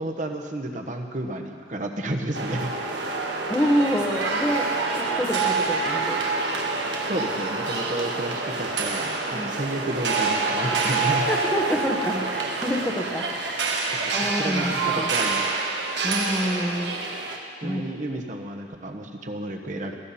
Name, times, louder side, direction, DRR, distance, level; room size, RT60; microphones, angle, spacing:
voice 1, 0.0-2.7 7.1-11.3 13.9-15.5 17.6-19.9, right 1 dB, 45° right, 3 dB, 1.1 m, -31 dB
sound 1, 2.3-17.4, right 3 dB, 85° right, 1.6 m, -27 dB
voice 2, 3.5-4.7 4.9-6.2 9.3-9.5 11.3-13.8 14.1-15.1 16.0-17.0 17.6-17.8, equal, 10° left, 0 dB, 0.9 m, -27 dB
17.5 x 15.5 x 4.2 m, 2.2 s
head